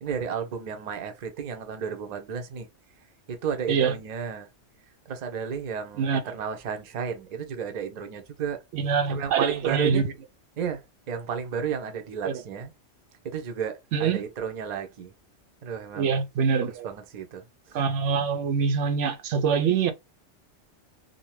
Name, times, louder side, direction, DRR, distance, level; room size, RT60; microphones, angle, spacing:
voice 1, 0.0-2.7 3.3-4.5 5.1-8.6 9.1-10.1 10.6-10.8 11.1-12.7 13.2-15.1 15.6-16.2 16.6-17.4, right 7 dB, 50° right, 0.6 m, -32 dB
voice 2, 8.7-10.1 12.2-12.4 13.9-14.3 15.9-16.9 17.7-19.9, right 6 dB, 80° right, 0.9 m, -24 dB
2.7 x 2.1 x 3.1 m
omnidirectional pair, 1.2 m